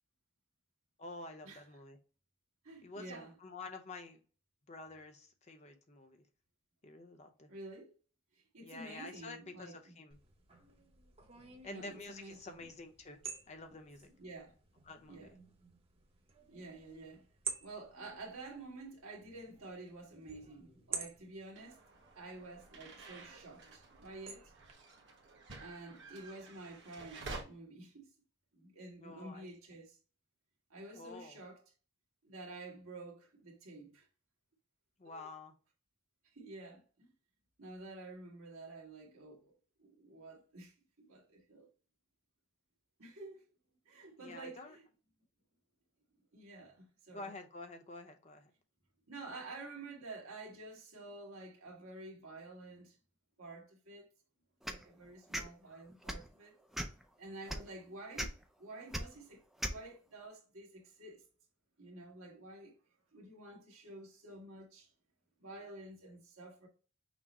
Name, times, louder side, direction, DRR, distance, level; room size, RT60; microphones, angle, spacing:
voice 1, 1.0-2.0 2.8-4.2 4.7-6.2 6.8-7.5 8.6-10.2 11.6-13.2 13.5-14.1 14.9-15.3 29.0-29.5 30.9-31.4 35.0-35.5 44.2-44.8 47.1-48.5, left 2 dB, 30° left, 0.6 m, -49 dB
voice 2, 2.6-3.3 7.5-7.9 8.3-9.9 11.7-12.7 14.2-14.6 15.1-15.3 16.5-17.2 17.6-21.8 22.1-24.5 25.6-28.1 28.5-30.0 30.7-31.6 32.2-34.1 35.0-35.3 36.3-37.1 37.6-39.5 39.8-41.7 43.0-43.4 43.8-44.8 46.3-47.3 49.1-53.0 53.4-54.1 54.7-56.5 57.2-58.3 58.6-59.4 59.7-61.2 61.8-62.7 63.1-64.9 65.4-66.7, right 2 dB, 70° right, 1.6 m, -50 dB
sound 1, 10.1-24.7, right 5 dB, 25° right, 0.7 m, -50 dB
sound 2, 21.6-27.4, right 3 dB, 55° right, 1.1 m, -51 dB
sound 3, 54.6-54.8 55.3-55.5 56.0-56.3 56.7-57.0 57.5-57.6 58.2-58.3 58.9-59.0 59.6-59.8, right 1 dB, ahead, 0.3 m, -37 dB
6.0 x 2.0 x 4.1 m
head